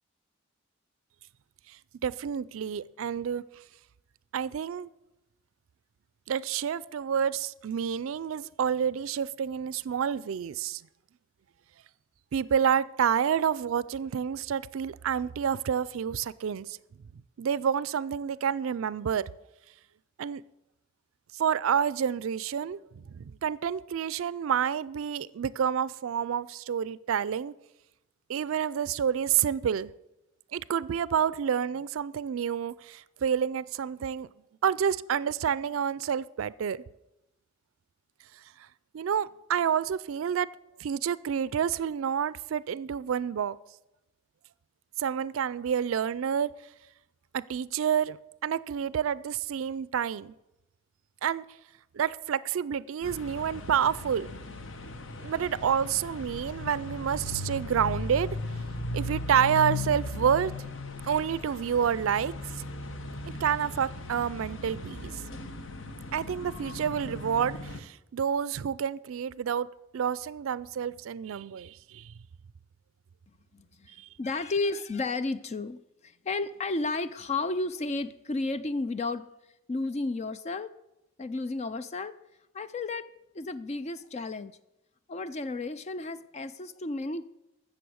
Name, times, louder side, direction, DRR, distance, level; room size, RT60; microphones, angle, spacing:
voice 1, 2.0-3.4 4.3-4.9 6.3-10.8 12.3-16.7 17.4-19.2 20.2-20.4 21.3-27.5 28.3-29.9 30.5-34.3 34.6-36.8 38.9-40.5 40.8-43.6 45.0-46.5 47.3-48.2 48.4-50.3 51.2-51.4 51.9-54.3 55.2-58.4 58.9-60.5 61.0-62.3 63.4-65.1 66.1-69.7 69.9-72.1, right 8 dB, 75° right, 0.4 m, -29 dB
sound 1, 53.0-67.8, left 2 dB, 65° left, 0.9 m, -37 dB
voice 2, 73.5-79.3 79.7-80.7 81.2-82.2 82.5-83.1 83.3-84.5 85.1-87.3, left 3 dB, 35° left, 0.4 m, -32 dB
15.0 x 6.9 x 6.3 m
head